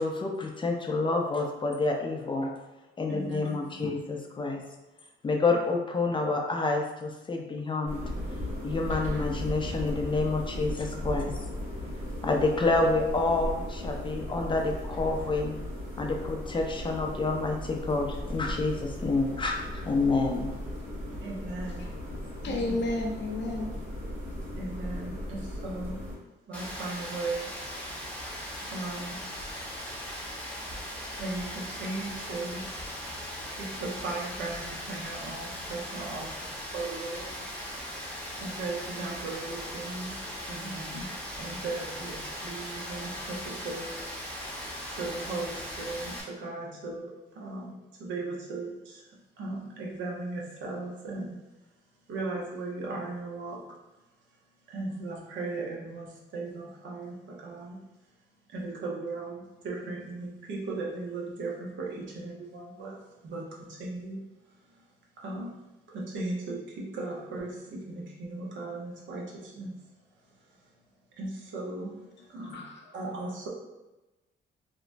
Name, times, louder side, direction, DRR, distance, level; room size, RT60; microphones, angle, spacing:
voice 1, 0.0-2.5 3.0-4.6 5.2-8.0 8.6-11.3 12.2-15.6 16.0-20.5, left 3 dB, 25° left, 2 dB, 0.4 m, -28 dB
voice 2, 3.1-3.6 21.2-21.9 22.4-22.8 24.6-26.0 26.5-27.5 28.7-29.4 31.2-32.6 33.5-37.3 38.4-41.1 41.4-43.9 44.9-47.7 48.0-49.0 49.4-51.4 52.1-53.6 54.7-57.8 58.5-63.0 63.2-64.2 65.2-65.5 65.9-69.7 70.3-70.7 71.2-72.0 72.3-72.6 72.9-73.5, right 2 dB, 70° right, -2 dB, 0.7 m, -37 dB
sound 1, 7.9-26.2, left 1 dB, 45° right, 1.4 m, -36 dB
voice 3, 22.4-23.7 72.4-73.0, left 2 dB, 65° left, 0 dB, 0.6 m, -32 dB
Rain, 26.5-46.2, equal, 5° left, 0.8 m, -39 dB
2.9 x 2.1 x 2.5 m, 1.0 s
cardioid pair, 90°, 20 cm